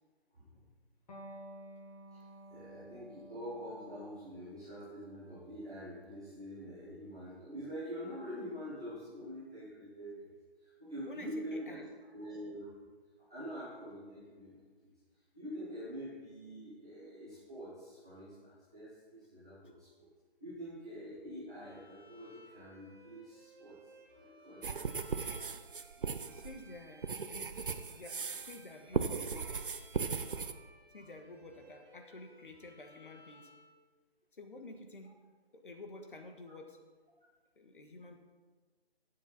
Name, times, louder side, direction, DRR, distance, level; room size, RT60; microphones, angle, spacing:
Electric guitar, 1.1-8.2, right 1 dB, 35° left, 2.1 m, -54 dB
voice 1, 2.5-10.3 10.8-11.8 12.1-12.7 13.3-14.6 15.3-20.1 20.4-23.8 24.1-24.9 26.2-26.4, equal, 5° right, -14 dB, 0.6 m, -45 dB
voice 2, 11.1-11.9 26.3-29.8 30.9-33.5 34.3-35.1 35.5-36.8 37.6-38.2, left 2 dB, 55° left, 4 dB, 1.5 m, -50 dB
Bowed string instrument, 21.6-33.7, right 1 dB, 25° right, 1.7 m, -60 dB
sound 1, 24.6-28.6 28.9-30.5, right 5 dB, 55° right, 0.7 m, -37 dB
17.5 x 7.5 x 4.2 m, 1.4 s
figure-of-eight pair, 155°, 32 cm